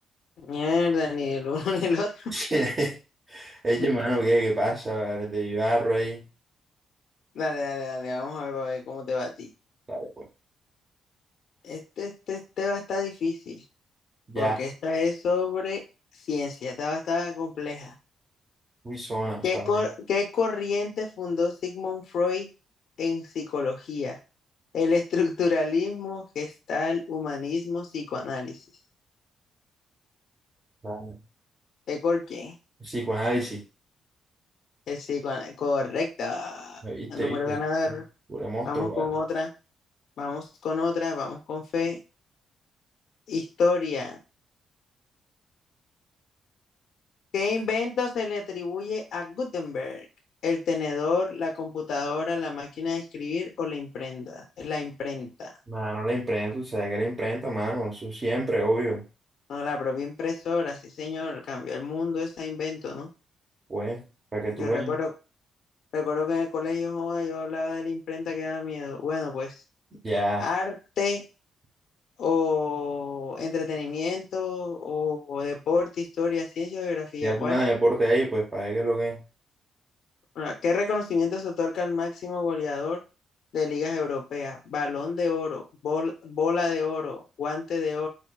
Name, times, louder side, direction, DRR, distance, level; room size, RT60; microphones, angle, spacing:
voice 1, 0.4-2.3 3.8-3.9 7.4-9.5 11.6-13.6 14.4-15.8 16.1-18.0 19.4-22.5 23.0-24.2 24.7-28.6 31.9-32.5 34.9-36.8 37.1-38.0 38.6-39.5 40.2-42.0 43.3-44.2 47.3-50.1 50.4-55.5 59.5-63.1 64.6-65.1 65.9-69.6 70.4-71.2 72.2-77.6 80.4-83.0 83.5-88.1, left 4 dB, 70° left, 2 dB, 0.6 m, -29 dB
voice 2, 2.3-3.0 3.3-6.2 9.9-10.2 14.3-14.6 18.8-19.4 30.8-31.2 32.8-33.6 36.8-37.6 37.9-38.0 38.3-39.1 55.7-59.0 63.7-64.0 64.3-65.0 70.0-70.5 77.2-79.2, right 1 dB, 30° right, -3 dB, 1.0 m, -27 dB
4.3 x 2.6 x 2.2 m, 0.30 s
cardioid pair, 80°, 0 cm